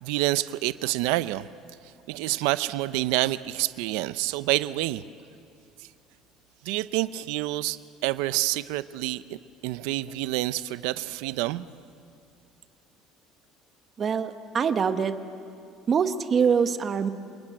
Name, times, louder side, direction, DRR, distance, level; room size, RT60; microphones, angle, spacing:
voice 1, 0.0-1.5 2.1-5.0 6.6-9.4 9.6-11.7, right 17 dB, 85° right, 15 dB, 0.6 m, -28 dB
voice 2, 14.0-15.1 15.9-17.1, right 6 dB, 30° right, 9 dB, 1.1 m, -24 dB
28.5 x 22.5 x 8.9 m, 2.5 s
cardioid pair, 155°, 0 cm